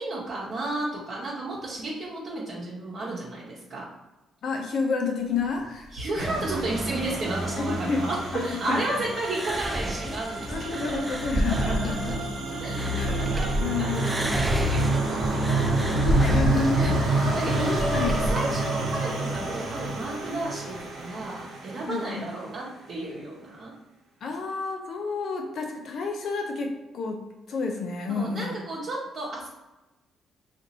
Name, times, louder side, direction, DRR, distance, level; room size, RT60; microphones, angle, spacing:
voice 1, 0.0-3.9 5.9-11.2 11.6-12.2 12.6-16.0 16.8-23.7 28.1-29.5, right 2 dB, 55° right, -9 dB, 1.0 m, -33 dB
voice 2, 4.4-5.9 7.6-8.8 10.0-10.1 10.5-12.1 12.9-13.2 13.6-14.1 15.5-16.8 17.5-18.3 21.9-22.2 24.2-27.2 27.5-28.6, left 4 dB, 65° left, 2 dB, 0.7 m, -30 dB
sound 1, 5.3-13.4, left 1 dB, 35° left, 1.2 m, -47 dB
sound 2, 6.2-22.3, right 2 dB, 90° right, 0.9 m, -28 dB
sound 3, 9.2-13.6 13.9-18.4, right 1 dB, 10° right, 0.3 m, -30 dB
2.7 x 2.5 x 4.1 m, 1.0 s
cardioid pair, 90°, 0 cm